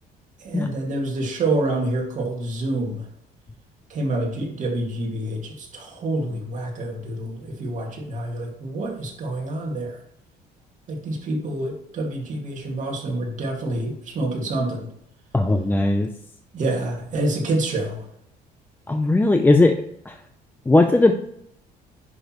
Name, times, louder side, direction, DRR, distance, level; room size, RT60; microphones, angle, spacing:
voice 1, 0.4-3.1 3.9-10.0 10.9-14.9 16.5-18.0, right 2 dB, 45° right, 0 dB, 2.3 m, -27 dB
voice 2, 15.3-16.1 18.9-19.7 20.1-20.2 20.7-21.1, left 2 dB, 10° left, 6 dB, 0.6 m, -17 dB
10.5 x 6.2 x 3.1 m, 0.72 s
cardioid pair, 110°, 17 cm